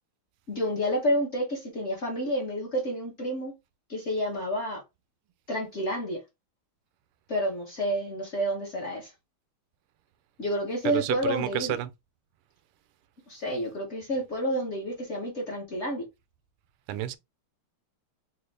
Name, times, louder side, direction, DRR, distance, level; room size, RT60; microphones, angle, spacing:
voice 1, 0.5-3.5 3.9-4.8 5.5-6.2 7.3-9.1 10.4-11.8 13.3-16.1, equal, 45° left, 0.9 m, -29 dB
voice 2, 10.8-11.9 16.9-17.2, right 12 dB, 90° right, 1.5 m, -30 dB
4.0 x 2.5 x 3.2 m
omnidirectional pair, 2.4 m